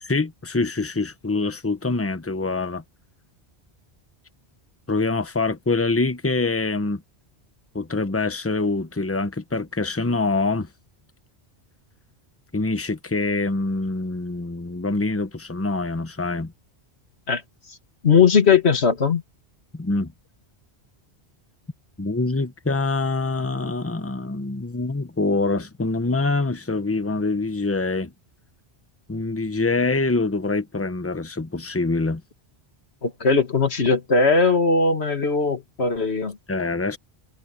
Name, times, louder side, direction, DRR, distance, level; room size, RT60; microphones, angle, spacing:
voice 1, 0.0-2.8 4.9-7.0 7.7-10.7 12.5-16.5 19.7-20.1 22.0-28.1 29.1-32.2 36.5-37.0, left 3 dB, 15° left, 0.9 m, -25 dB
voice 2, 18.0-19.2 33.0-36.4, left 5 dB, 75° left, 2.2 m, -19 dB
omnidirectional pair, 1.1 m